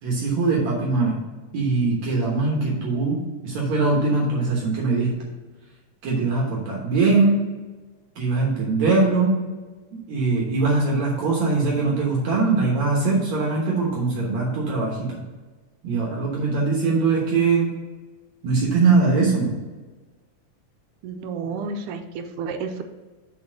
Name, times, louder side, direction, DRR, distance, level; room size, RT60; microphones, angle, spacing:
voice 1, 0.0-1.2 1.5-5.1 6.0-7.4 8.2-9.4 10.1-15.2 15.8-17.7 18.4-19.5, right 3 dB, 65° right, -3 dB, 2.3 m, -21 dB
voice 2, 21.0-22.8, right 4 dB, 80° right, 7 dB, 2.1 m, -31 dB
7.1 x 4.3 x 6.4 m, 1.3 s
omnidirectional pair, 3.6 m